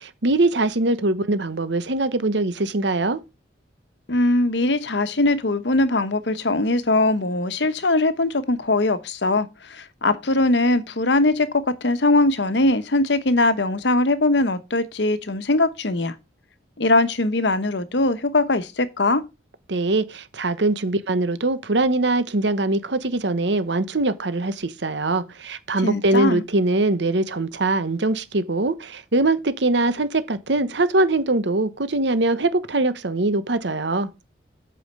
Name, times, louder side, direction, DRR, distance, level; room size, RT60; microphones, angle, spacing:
voice 1, 0.0-3.2 19.7-34.1, right 2 dB, 70° right, 1.0 m, -22 dB
voice 2, 4.1-16.1 16.8-19.2 25.8-26.4, left 2 dB, 70° left, 1.0 m, -21 dB
8.5 x 5.5 x 5.4 m
head